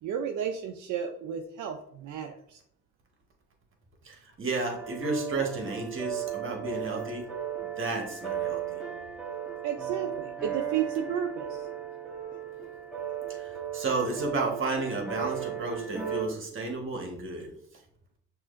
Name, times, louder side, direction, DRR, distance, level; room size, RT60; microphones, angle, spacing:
voice 1, 0.0-2.6 9.6-11.7, right 8 dB, 75° right, 4 dB, 0.5 m, -33 dB
voice 2, 4.0-7.3 7.6-8.8 13.3-17.5, right 3 dB, 40° right, 2 dB, 1.4 m, -32 dB
sound 1, 4.7-16.3, right 9 dB, ahead, 1.3 m, -36 dB
6.1 x 2.9 x 2.5 m, 0.69 s
cardioid pair, 80°, 30 cm